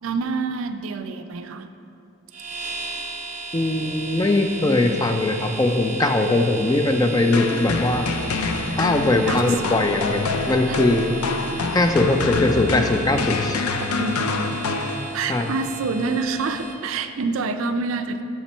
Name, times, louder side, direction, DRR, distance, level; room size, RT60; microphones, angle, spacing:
voice 1, 0.0-1.7 9.3-9.4 10.7-10.8 14.0-14.6 15.1-18.2, right 4 dB, 65° right, 8 dB, 0.4 m, -27 dB
sound 1, 2.3-16.7, right 3 dB, 35° right, 0.8 m, -35 dB
voice 2, 3.5-8.1 8.7-11.1 11.7-13.6 15.3-15.5, left 2 dB, 15° left, 5 dB, 0.3 m, -20 dB
Clock, 6.9-7.0 8.2-15.0, equal, 70° left, 0.9 m, -43 dB
sound 2, 7.3-15.5, left 4 dB, 85° left, 0.4 m, -27 dB
7.2 x 5.9 x 4.3 m, 2.6 s
head